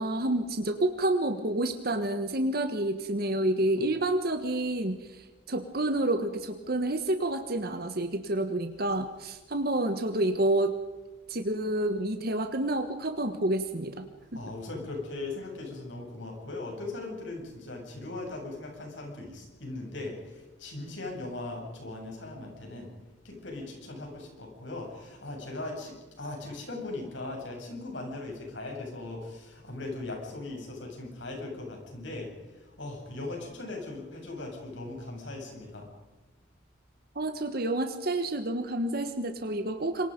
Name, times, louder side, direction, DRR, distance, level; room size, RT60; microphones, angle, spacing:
voice 1, 0.0-5.2 5.5-10.7 11.3-14.0 37.1-40.1, right 1 dB, 50° right, 7 dB, 1.3 m, -29 dB
voice 2, 14.3-22.9 23.2-35.9, left 2 dB, 70° left, 1 dB, 8.0 m, -39 dB
27.5 x 24.0 x 5.3 m, 1.2 s
head